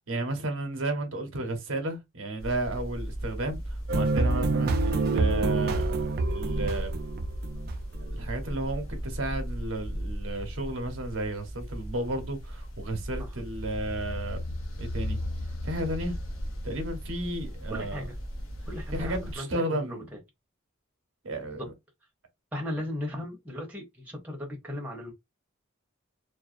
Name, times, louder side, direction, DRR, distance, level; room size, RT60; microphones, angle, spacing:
voice 1, 0.1-7.0 8.0-14.4 14.8-15.2 15.6-16.2 16.6-18.0 18.9-20.1 21.2-21.7, right 1 dB, 85° right, 0.8 m, -33 dB
sound 1, 2.4-19.4, equal, 85° left, 0.7 m, -36 dB
sound 2, 3.9-8.3, right 3 dB, 50° right, 0.4 m, -27 dB
voice 2, 17.7-18.1 18.7-20.0 21.5-21.7 22.5-25.1, left 1 dB, 10° right, 0.7 m, -36 dB
2.4 x 2.1 x 2.4 m
head